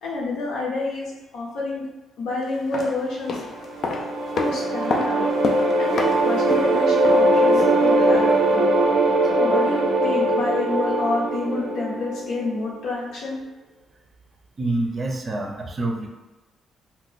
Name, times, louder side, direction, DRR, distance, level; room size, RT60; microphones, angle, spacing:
voice 1, 0.0-1.8 2.2-3.4 4.4-5.3 5.8-8.7 9.3-13.4, left 2 dB, 85° left, -5 dB, 1.0 m, -28 dB
sound 1, 2.5-8.5 8.8-8.9, left 3 dB, 60° left, 0.4 m, -31 dB
sound 2, 3.5-12.6, right 1 dB, 85° right, 0.5 m, -21 dB
voice 2, 14.6-16.1, right 2 dB, 35° right, 3 dB, 0.5 m, -26 dB
2.4 x 2.1 x 3.9 m, 1.1 s
cardioid pair, 90°, 0 cm